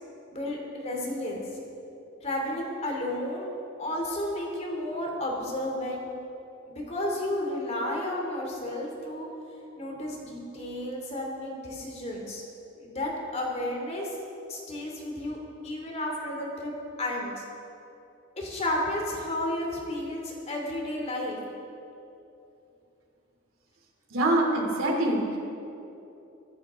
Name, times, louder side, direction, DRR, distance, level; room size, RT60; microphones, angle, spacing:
voice 1, 0.3-1.4 2.2-3.5 3.8-6.1 6.7-9.3 9.8-12.4 12.8-14.1 14.5-15.4 15.6-17.4 18.4-21.4, left 1 dB, 35° left, -1 dB, 2.7 m, -32 dB
voice 2, 24.1-25.4, right 1 dB, 85° right, -1 dB, 3.0 m, -24 dB
23.5 x 11.0 x 3.7 m, 2.8 s
head